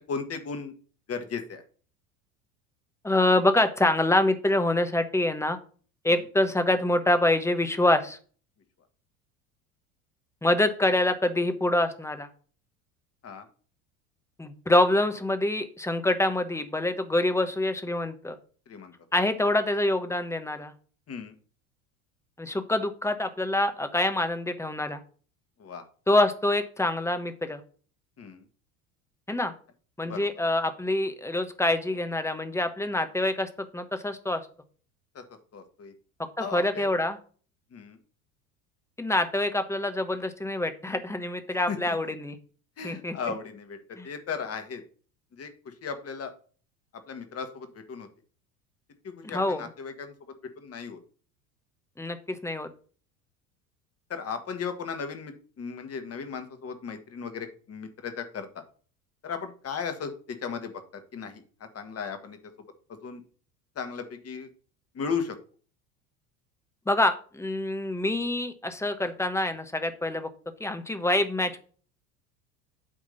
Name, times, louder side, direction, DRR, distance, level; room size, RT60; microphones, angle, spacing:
voice 1, 0.1-0.7 1.1-1.6 13.2-13.5 18.7-18.9 21.1-21.3 25.6-25.8 28.2-28.4 30.0-30.3 35.2-35.3 35.5-35.9 36.4-36.9 37.7-38.0 41.7-42.0 42.8-43.8 44.0-44.8 45.4-46.3 47.1-48.1 49.0-50.1 50.6-51.0 54.1-58.6 59.2-60.7 61.1-61.4 61.7-62.4 62.9-63.2 63.8-64.5 64.9-65.4, left 6 dB, 35° left, 8 dB, 1.7 m, -36 dB
voice 2, 3.0-5.6 6.0-8.2 10.4-12.3 14.4-18.4 19.1-20.7 22.4-25.0 26.1-27.6 29.3-29.5 30.0-34.4 36.4-37.2 39.0-42.4 42.8-43.2 43.9-44.1 49.2-49.7 52.0-52.7 66.9-70.3 70.6-71.6, left 1 dB, 5° left, 8 dB, 1.1 m, -26 dB
9.0 x 3.6 x 6.6 m, 0.41 s
hypercardioid pair, 75°, 43 cm